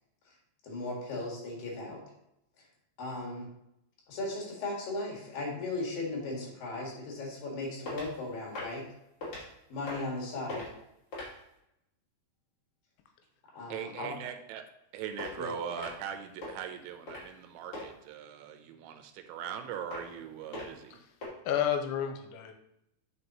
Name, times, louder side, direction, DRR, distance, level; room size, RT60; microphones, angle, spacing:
voice 1, 0.6-2.0 3.0-3.5 4.1-8.9 9.7-10.7 13.5-14.1 15.4-15.5, left 2 dB, 60° left, -2 dB, 3.1 m, -37 dB
sound 1, 7.9-8.2 8.5-8.8 9.2-9.4 9.8-10.2 10.5-10.7 11.1-11.4 15.2-15.3 15.8-16.1 16.4-16.6 17.1-17.4 17.7-17.9 19.9-20.2 20.5-20.8 21.2-21.3, left 2 dB, 35° left, 3.0 m, -39 dB
voice 2, 13.7-14.6 14.9-21.0, right 8 dB, 85° right, 6 dB, 3.0 m, -40 dB
voice 3, 21.5-22.5, left 9 dB, 90° left, 6 dB, 3.0 m, -31 dB
8.2 x 6.4 x 2.9 m, 0.82 s
omnidirectional pair, 5.3 m